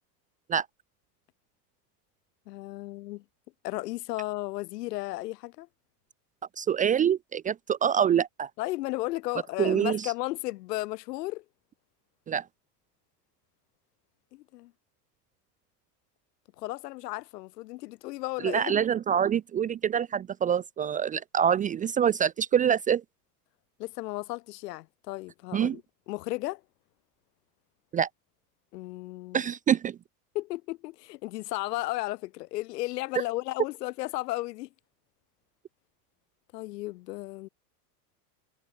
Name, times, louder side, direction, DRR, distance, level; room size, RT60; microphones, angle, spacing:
voice 1, 2.5-3.2 3.6-5.7 8.6-11.4 14.3-14.7 16.6-18.7 23.8-26.6 28.7-29.4 30.3-34.7 36.5-37.5, left 19 dB, 75° left, 3.8 m, -34 dB
voice 2, 6.6-8.5 9.6-10.1 12.3-12.4 18.4-23.0 25.5-25.8 27.9-28.1 29.3-30.0, right 8 dB, 15° right, 0.6 m, -25 dB
supercardioid pair, 145°, 49 cm